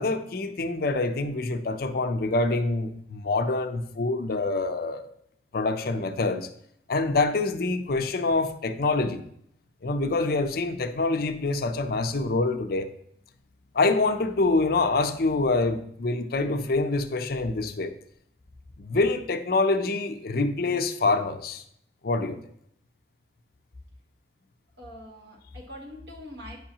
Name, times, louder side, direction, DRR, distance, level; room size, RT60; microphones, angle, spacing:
voice 1, 0.0-5.1 5.5-6.5 6.9-9.2 9.8-12.9 13.7-17.9 18.8-21.6 22.0-22.4, left 3 dB, 55° left, 0.5 m, -26 dB
voice 2, 24.8-26.6, left 1 dB, 65° right, 1.8 m, -43 dB
9.5 x 5.4 x 2.9 m
head